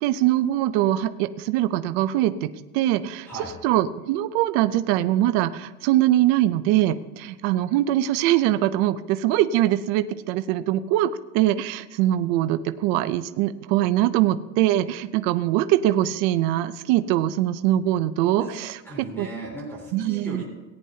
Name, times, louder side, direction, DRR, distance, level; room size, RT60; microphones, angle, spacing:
voice 1, 0.0-3.3 3.6-18.8 19.2-19.3 19.9-20.4, right 13 dB, 40° right, 11 dB, 0.4 m, -22 dB
voice 2, 18.4-20.4, right 2 dB, 5° left, -4 dB, 3.8 m, -36 dB
18.0 x 9.3 x 2.7 m, 1.2 s
supercardioid pair, 155°, 49 cm